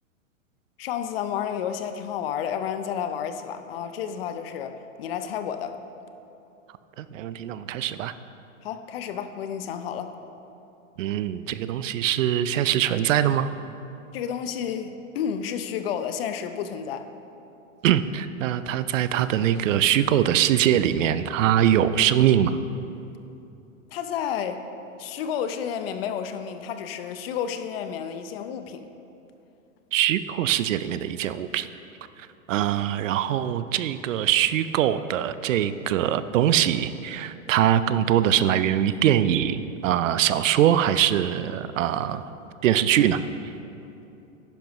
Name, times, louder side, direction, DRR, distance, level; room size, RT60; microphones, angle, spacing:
voice 1, 0.8-5.8 8.6-10.2 14.1-17.1 23.9-24.6 25.0-28.9, left 8 dB, 45° left, 9 dB, 0.6 m, -31 dB
voice 2, 7.0-8.1 11.0-13.5 17.8-22.6 29.9-31.7 32.5-42.2 42.6-43.2, right 11 dB, 70° right, 13 dB, 0.5 m, -22 dB
10.5 x 10.5 x 3.0 m, 2.8 s
hypercardioid pair, 140°, 40 cm